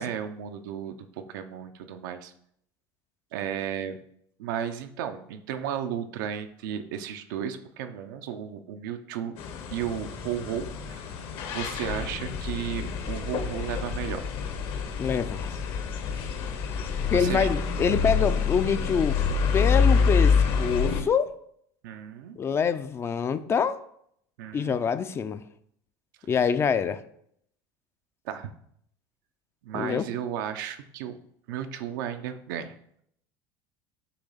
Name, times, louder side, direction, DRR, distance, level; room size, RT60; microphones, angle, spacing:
voice 1, 0.0-2.3 3.3-4.0 4.4-9.4 9.7-11.2 11.5-14.2 17.1-17.5 21.8-22.4 24.4-24.8 28.2-28.5 29.6-31.2 31.5-32.7, right 9 dB, 85° right, 8 dB, 0.6 m, -34 dB
sound 1, 9.4-21.0, left 5 dB, 55° left, 1.0 m, -27 dB
voice 2, 15.0-15.6 17.1-19.2 19.5-21.3 22.4-23.8 24.5-25.4 26.3-27.0 29.7-30.1, left 6 dB, 25° left, 12 dB, 0.4 m, -25 dB
7.0 x 3.0 x 5.6 m, 0.69 s
supercardioid pair, 135°, 10 cm